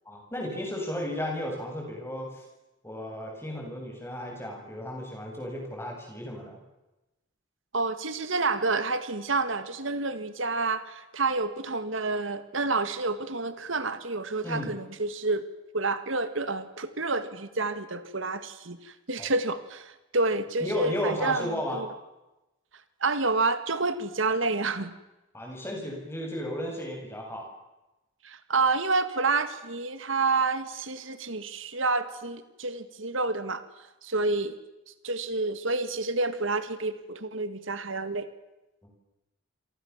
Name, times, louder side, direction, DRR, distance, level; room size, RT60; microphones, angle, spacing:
voice 1, 0.1-2.4 2.8-6.6 14.4-14.8 19.2-19.3 20.6-21.8 25.3-27.5 38.8-38.9, left 1 dB, 10° left, 1 dB, 7.8 m, -34 dB
voice 2, 7.7-15.4 15.7-21.9 23.0-24.9 28.2-34.5 35.0-38.3, right 3 dB, 75° right, 11 dB, 1.9 m, -29 dB
29.0 x 24.0 x 7.4 m, 0.99 s
head